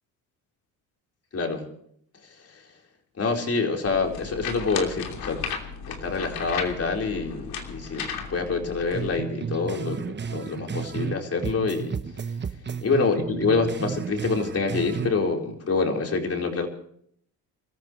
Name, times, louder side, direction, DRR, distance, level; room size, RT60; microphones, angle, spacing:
voice 1, 1.3-1.7 2.5-2.6 3.2-5.4 5.9-12.0 12.8-16.7, left 4 dB, 40° left, 2 dB, 4.2 m, -26 dB
sound 1, 3.8-9.2, left 6 dB, 75° left, 3.1 m, -35 dB
sound 2, 8.9-11.2 11.4-15.1, right 6 dB, 30° right, 1.0 m, -32 dB
29.0 x 14.0 x 3.2 m, 0.66 s
cardioid pair, 85°, 37 cm